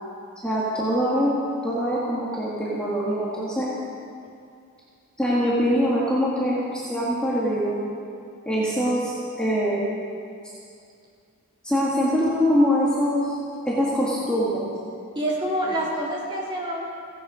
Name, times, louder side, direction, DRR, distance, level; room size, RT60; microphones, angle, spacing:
voice 1, 0.4-1.3 1.6-3.7 5.2-7.8 8.5-9.1 9.4-9.8 11.6-13.3 13.7-14.7, equal, 5° left, -8 dB, 1.9 m, -23 dB
voice 2, 15.1-16.9, right 1 dB, 20° right, -5 dB, 3.3 m, -27 dB
16.5 x 16.5 x 5.1 m, 2.4 s
head